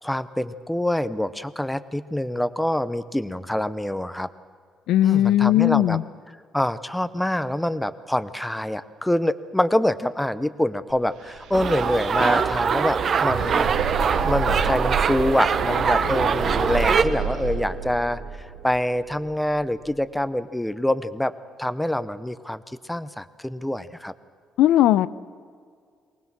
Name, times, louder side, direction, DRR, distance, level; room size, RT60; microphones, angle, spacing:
voice 1, 0.0-4.3 5.0-6.0 6.5-13.7 14.2-21.3 21.6-22.6 22.9-24.1, left 1 dB, 5° left, 14 dB, 0.6 m, -25 dB
voice 2, 4.9-6.0 24.6-25.1, left 13 dB, 80° left, 16 dB, 0.6 m, -18 dB
sound 1, 10.9-11.0 11.2-20.0, right 5 dB, 85° right, 2.0 m, -30 dB
sound 2, 11.5-17.0, right 6 dB, 35° right, 0.9 m, -23 dB
23.5 x 19.0 x 7.4 m, 2.1 s
cardioid pair, 160°, 0 cm